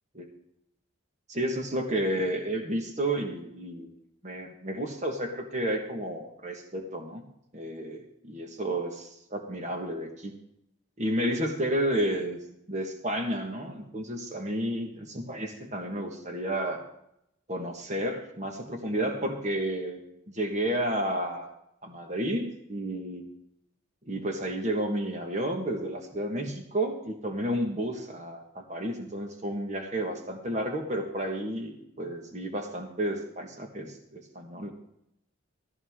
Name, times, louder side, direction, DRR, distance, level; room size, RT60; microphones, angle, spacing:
voice 1, 1.3-3.9 4.2-7.2 7.5-10.3 11.0-12.4 12.7-14.9 15.1-16.8 17.5-20.0 20.3-21.5 21.8-23.2 24.1-34.7, right 1 dB, 35° right, 4 dB, 1.5 m, -31 dB
14.5 x 14.0 x 3.7 m, 0.77 s
head